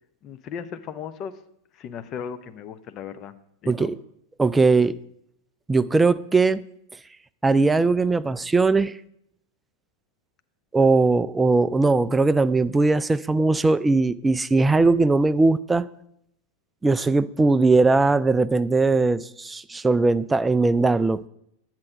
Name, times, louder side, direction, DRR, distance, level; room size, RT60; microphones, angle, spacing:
voice 1, 0.2-1.4 1.7-3.3 3.6-3.9, left 7 dB, 35° left, 0.6 m, -36 dB
voice 2, 4.4-4.9 5.7-6.6 7.4-8.9 10.7-15.9 16.8-21.3, right 3 dB, 10° right, 0.3 m, -20 dB
9.7 x 7.4 x 4.9 m
figure-of-eight pair, 90°, 0 cm